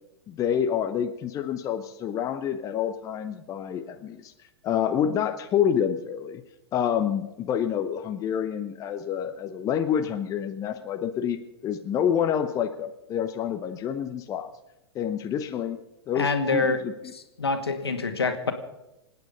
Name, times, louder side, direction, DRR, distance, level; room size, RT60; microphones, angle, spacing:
voice 1, 0.3-4.3 4.6-6.4 6.7-14.5 14.9-15.8 16.1-17.1, left 8 dB, 25° left, 7 dB, 1.0 m, -28 dB
voice 2, 16.2-16.8 17.1-18.5, left 3 dB, 70° left, 6 dB, 2.0 m, -26 dB
26.5 x 9.3 x 5.3 m, 0.91 s
figure-of-eight pair, 100°, 13 cm